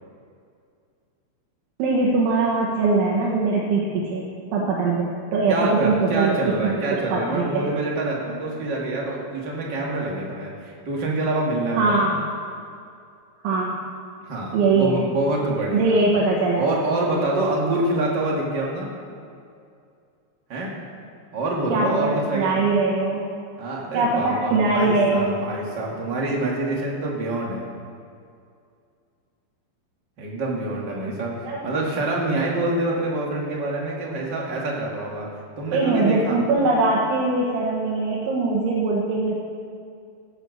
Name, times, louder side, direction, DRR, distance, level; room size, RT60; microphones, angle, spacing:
voice 1, 1.8-4.2 4.5-6.7 7.1-7.8 11.8-12.1 13.4-13.8 14.5-15.0 15.7-16.7 21.7-23.3 23.9-25.3 31.5-31.6 35.7-39.3, right 3 dB, 85° right, -4 dB, 3.8 m, -21 dB
voice 2, 5.5-11.9 14.2-16.0 16.5-18.9 20.5-20.7 21.3-22.6 23.6-27.6 30.2-35.3 35.6-36.4, right 2 dB, 40° right, -3 dB, 1.6 m, -26 dB
16.0 x 8.2 x 6.6 m, 2.4 s
omnidirectional pair, 5.3 m